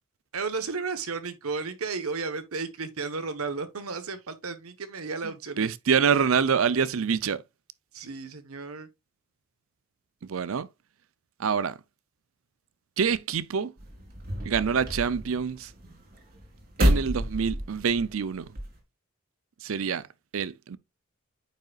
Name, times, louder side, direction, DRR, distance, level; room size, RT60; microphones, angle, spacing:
voice 1, 0.3-5.7 7.9-8.9, right 4 dB, 85° right, 1.2 m, -33 dB
voice 2, 5.2-7.4 10.3-10.7 11.4-11.8 13.0-13.7 14.4-15.7 16.8-18.5 19.6-20.0 20.3-20.8, right 6 dB, 70° right, 0.5 m, -26 dB
sound 1, 13.8-18.8, equal, 45° right, 2.4 m, -30 dB
9.0 x 5.4 x 2.4 m
head